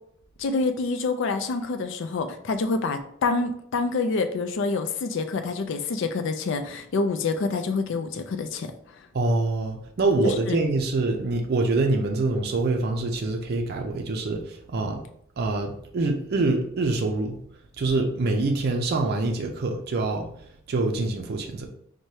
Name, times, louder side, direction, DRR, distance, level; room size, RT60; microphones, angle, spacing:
voice 1, 0.4-8.7 10.2-10.6, left 3 dB, 65° left, 0.4 m, -27 dB
voice 2, 9.1-14.4 14.7-15.0 15.4-17.4 17.8-20.3 20.7-21.7, right 2 dB, 50° right, 0.4 m, -25 dB
4.6 x 2.2 x 2.8 m
head